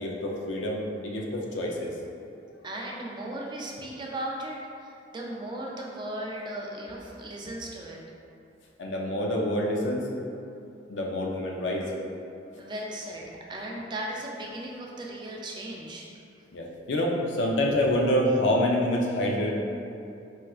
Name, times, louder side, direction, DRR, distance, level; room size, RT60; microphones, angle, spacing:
voice 1, 0.0-1.9 8.8-10.1 10.9-11.9 16.5-19.5, left 1 dB, 80° left, -1 dB, 0.5 m, -27 dB
voice 2, 2.6-8.0 12.6-16.1, right 1 dB, 25° right, -2 dB, 0.4 m, -37 dB
4.2 x 2.3 x 2.3 m, 2.6 s
head